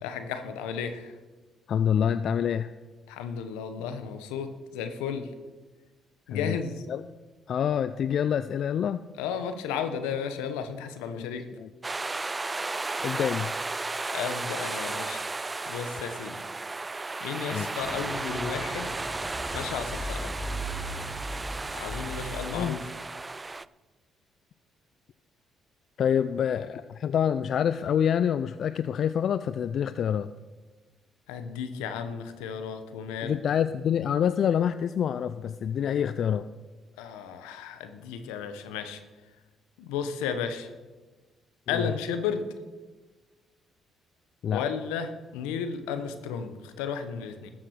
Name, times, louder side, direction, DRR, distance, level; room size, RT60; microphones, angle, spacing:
voice 1, 0.0-1.1 3.1-5.3 6.3-6.8 9.2-11.4 14.1-15.3 15.7-16.3 17.2-18.9 19.5-20.3 21.7-22.8 31.3-33.3 37.0-39.0 39.8-40.7 41.7-42.4 44.5-47.5, left 7 dB, 85° left, 9 dB, 1.1 m, -33 dB
voice 2, 1.7-2.7 6.3-6.6 6.9-7.0 7.5-9.0 11.2-11.7 13.0-13.5 17.5-17.7 22.5-22.7 26.0-30.3 33.2-36.5 41.7-41.9 44.4-44.6, left 8 dB, 65° left, 13 dB, 0.4 m, -27 dB
sound 1, 11.8-23.6, right 3 dB, 25° right, 0.4 m, -34 dB
sound 2, 17.8-22.9, equal, 25° left, 2.8 m, -38 dB
13.5 x 7.6 x 6.5 m, 1.3 s
supercardioid pair, 55°, 0 cm